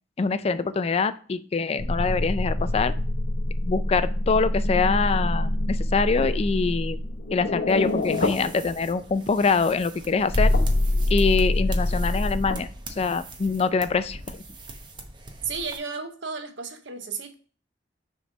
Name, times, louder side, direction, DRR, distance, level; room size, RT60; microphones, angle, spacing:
voice 1, 0.2-2.9 3.6-7.0 7.3-10.5 11.1-12.7 13.0-14.4, left 4 dB, 35° left, 0.4 m, -24 dB
sound 1, 1.8-9.0 10.0-12.5, left 1 dB, 65° left, 0.8 m, -25 dB
sound 2, 7.7-15.8, right 2 dB, 25° right, 0.8 m, -42 dB
voice 2, 15.4-17.3, right 5 dB, 75° right, 0.9 m, -33 dB
6.3 x 3.4 x 5.1 m
head